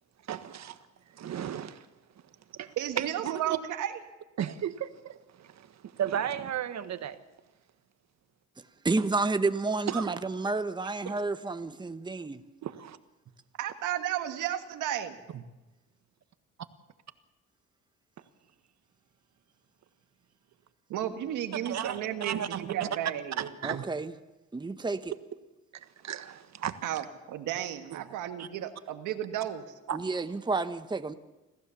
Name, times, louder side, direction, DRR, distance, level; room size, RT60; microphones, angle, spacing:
voice 1, 0.3-0.8 1.1-1.9 2.5-3.6 4.4-5.7 6.0-7.2 9.9-10.1 11.0-11.2 12.6-13.0 15.3-15.4 21.6-22.9 23.4-23.9 26.0-26.8 27.9-28.0 28.4-28.5 29.9-30.0, right 9 dB, 60° right, 1.5 m, -34 dB
voice 2, 2.8-4.0 13.6-15.2 20.9-23.4 26.8-29.6, right 11 dB, 85° right, 1.7 m, -33 dB
voice 3, 8.8-12.4 23.6-24.1 24.5-25.1 29.9-31.1, right 3 dB, 15° right, 1.0 m, -30 dB
26.0 x 15.5 x 7.1 m
cardioid pair, 90°, 30 cm